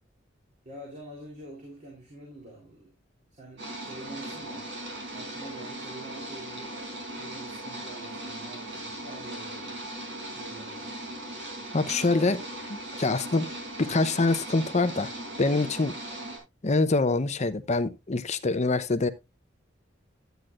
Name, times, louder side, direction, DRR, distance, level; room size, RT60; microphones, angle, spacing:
voice 1, 0.6-2.9 3.3-4.7 5.1-6.8 7.2-9.8 10.3-11.0, right 1 dB, 40° right, 3.6 m, -46 dB
sound 1, 3.6-16.4, right 1 dB, 65° right, 4.5 m, -38 dB
voice 2, 11.7-12.4 12.7-13.5 13.8-15.1 15.4-16.0 16.6-19.1, left 3 dB, 35° left, 0.8 m, -25 dB
12.0 x 9.3 x 2.5 m
head